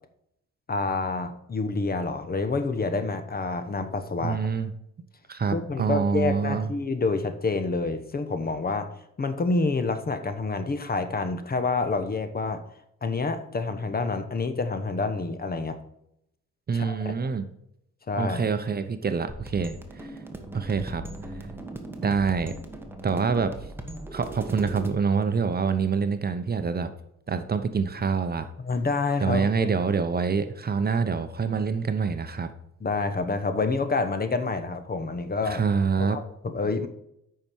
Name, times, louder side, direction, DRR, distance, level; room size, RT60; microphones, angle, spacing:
voice 1, 0.7-4.4 5.5-8.9 9.2-12.6 13.0-15.8 16.7-17.1 18.1-18.4 28.6-29.7 32.8-35.6 36.0-36.9, left 3 dB, 30° left, 10 dB, 1.0 m, -28 dB
voice 2, 4.2-4.7 5.3-6.7 16.7-17.5 18.2-20.1 20.5-21.0 22.0-22.5 23.0-23.5 24.1-26.9 27.3-28.5 29.2-32.5 35.5-36.2, right 5 dB, 30° right, 10 dB, 0.8 m, -26 dB
sound 1, 19.3-24.9, right 2 dB, 5° right, 1.4 m, -39 dB
8.7 x 5.7 x 4.7 m, 0.77 s
cardioid pair, 90°, 30 cm